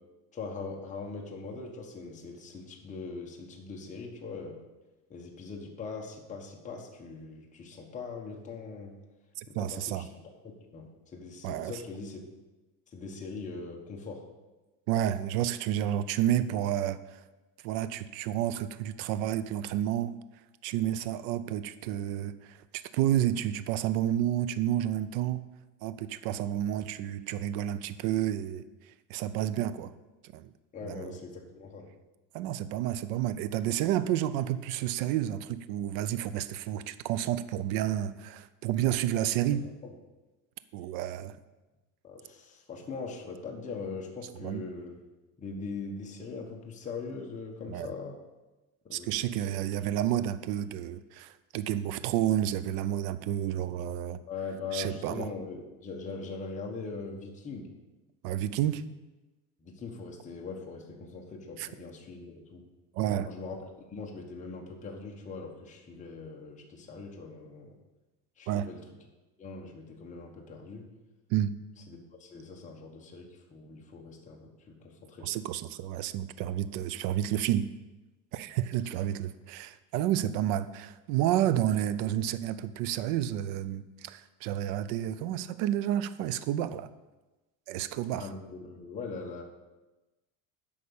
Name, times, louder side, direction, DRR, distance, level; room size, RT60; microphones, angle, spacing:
voice 1, 0.3-4.6 5.1-9.0 9.5-12.2 12.9-14.2 30.7-31.9 39.4-39.9 42.0-44.9 45.4-48.2 48.8-49.3 54.3-57.7 59.6-62.7 63.2-67.7 68.4-68.8 69.4-70.9 71.9-75.3 78.9-79.0 88.1-89.4, left 4 dB, 20° left, 0 dB, 1.2 m, -41 dB
voice 2, 9.4-10.1 11.4-11.7 14.9-17.2 17.6-20.2 20.6-25.5 25.8-28.6 29.1-29.9 30.2-30.5 30.8-31.2 32.3-39.7 40.7-41.4 44.4-44.6 47.7-47.9 48.9-54.2 54.7-55.3 58.2-58.8 61.6-61.7 62.9-63.3 68.5-68.7 71.3-71.5 75.2-77.6 78.3-86.9 87.7-88.3, right 11 dB, 65° right, 14 dB, 0.6 m, -30 dB
8.6 x 5.3 x 7.0 m, 1.1 s
cardioid pair, 145°, 38 cm